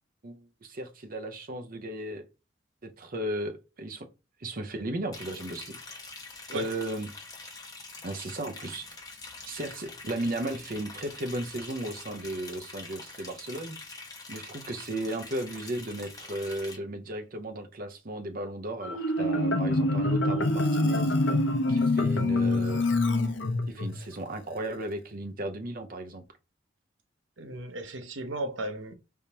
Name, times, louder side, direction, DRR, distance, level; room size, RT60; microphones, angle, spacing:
voice 1, 0.2-2.2 2.8-4.1 4.4-6.1 6.5-7.1 8.0-8.9 9.5-13.8 14.3-21.4 21.7-22.9 23.7-26.2, right 1 dB, 50° right, 0.8 m, -35 dB
Liquid, 5.1-16.8, left 3 dB, 20° left, 1.1 m, -45 dB
Marimba xylophone, 18.8-23.9, left 2 dB, 85° left, 0.7 m, -25 dB
voice 2, 27.4-29.0, right 2 dB, 85° right, 0.8 m, -35 dB
4.7 x 3.5 x 2.8 m
head